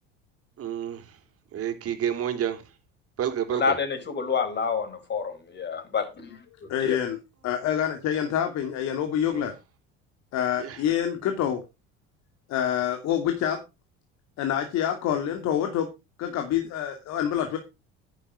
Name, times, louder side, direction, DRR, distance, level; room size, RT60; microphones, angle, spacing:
voice 1, 0.6-1.0 1.5-2.6 3.2-3.8 9.3-9.5 10.6-10.8, right 9 dB, 50° right, 3.6 m, -29 dB
voice 2, 3.5-6.4 6.8-7.0, left 5 dB, 35° left, 5.1 m, -28 dB
voice 3, 6.5-9.5 10.3-11.6 12.5-13.6 14.4-15.9 16.2-17.6, left 10 dB, 60° left, 2.7 m, -27 dB
10.5 x 10.0 x 5.0 m
supercardioid pair, 90°, 30 cm